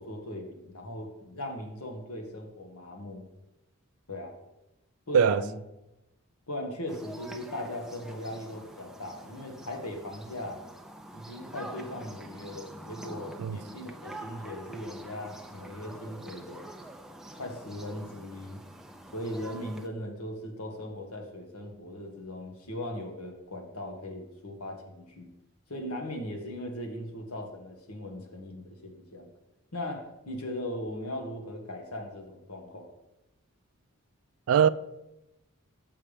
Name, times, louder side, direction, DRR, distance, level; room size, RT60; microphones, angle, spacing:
voice 1, 0.0-3.2 4.1-4.3 5.1-5.6 6.5-10.6 11.1-16.7 17.3-18.6 19.1-25.3 25.7-29.3 29.7-32.9, left 1 dB, 90° left, 1.4 m, -39 dB
voice 2, 5.1-5.4 13.4-13.6 34.5-34.7, right 8 dB, 75° right, 0.3 m, -21 dB
sound 1, 6.9-19.9, right 1 dB, ahead, 0.3 m, -46 dB
7.1 x 5.5 x 5.0 m
head